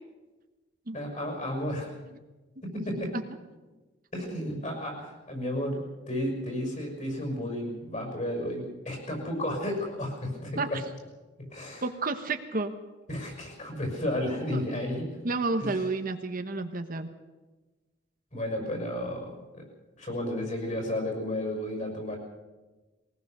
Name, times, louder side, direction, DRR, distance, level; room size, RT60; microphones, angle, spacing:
voice 1, 0.9-1.9 2.6-3.1 4.1-10.8 11.5-11.9 13.1-15.1 15.6-15.9 18.3-19.6 20.0-22.2, left 1 dB, 40° left, 2 dB, 6.2 m, -33 dB
voice 2, 11.8-12.7 14.5-14.6 15.2-17.1, right 3 dB, 45° right, 7 dB, 1.1 m, -30 dB
21.5 x 19.0 x 6.7 m, 1.2 s
head